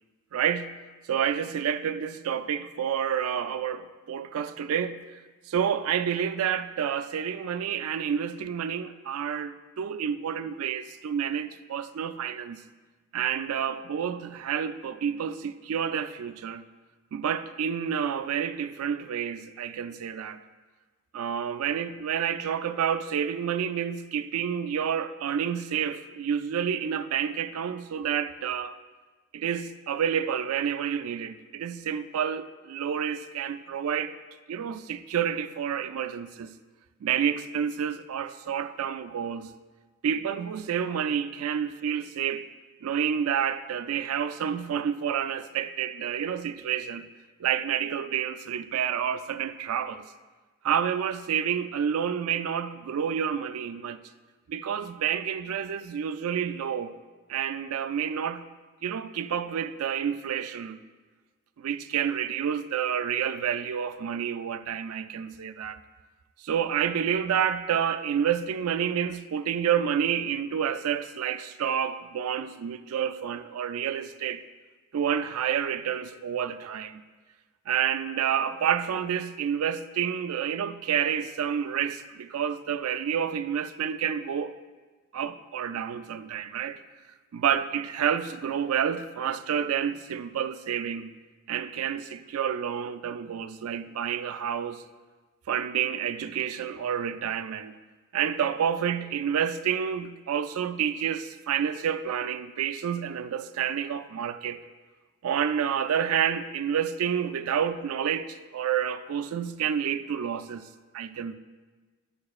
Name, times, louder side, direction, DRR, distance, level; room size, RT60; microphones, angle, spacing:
voice 1, 0.3-0.7 1.1-5.2 5.5-12.6 13.1-16.6 17.1-20.4 21.1-28.7 29.3-34.1 34.5-36.6 37.0-39.5 40.0-42.5 42.8-47.0 47.4-50.1 50.6-54.0 54.5-56.9 57.3-58.4 58.8-60.8 61.6-65.8 66.4-74.4 74.9-77.0 77.7-84.5 85.1-86.8 87.3-91.1 91.5-94.8 95.5-97.8 98.1-104.6 105.2-110.7 110.9-111.3, right 8 dB, 70° right, 0.3 m, -29 dB
9.4 x 6.6 x 2.4 m
head